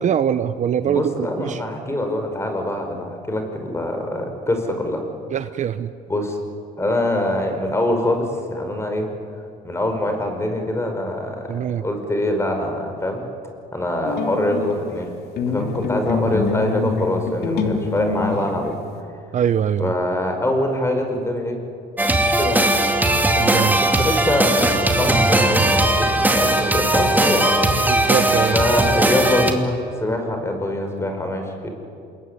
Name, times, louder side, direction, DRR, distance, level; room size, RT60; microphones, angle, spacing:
voice 1, 0.0-1.6 5.3-5.9 11.5-11.8 19.3-19.9 23.4-23.8 27.9-28.6, right 8 dB, 45° right, 12 dB, 0.9 m, -22 dB
voice 2, 0.8-5.0 6.1-6.4 6.8-9.1 9.6-13.2 13.7-15.1 15.5-18.8 19.8-21.6 22.4-22.7 23.3-27.6 28.5-31.7, left 1 dB, 15° left, 4 dB, 5.4 m, -24 dB
sound 1, 14.0-15.1 15.4-18.9, left 4 dB, 70° left, 3.1 m, -25 dB
sound 2, 22.0-29.5, right 1 dB, 10° right, 2.5 m, -18 dB
28.0 x 21.5 x 9.8 m, 2.5 s
cardioid pair, 110°, 17 cm